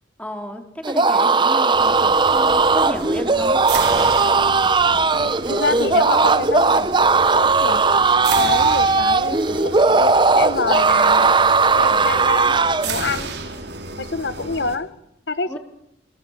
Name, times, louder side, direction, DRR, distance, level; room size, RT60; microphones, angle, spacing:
voice 1, 0.2-0.6 0.9-3.6 11.8-12.2 15.5-15.6, equal, 5° left, 4 dB, 4.1 m, -33 dB
sound 1, 0.8-12.9, right 4 dB, 25° right, 1.0 m, -17 dB
sound 2, 1.7-14.8, right 3 dB, 70° right, 5.0 m, -33 dB
voice 2, 5.1-7.8 8.3-13.3 14.0-14.9 15.3-15.6, left 3 dB, 75° left, 13 dB, 1.3 m, -27 dB
28.5 x 25.5 x 7.6 m, 0.83 s
head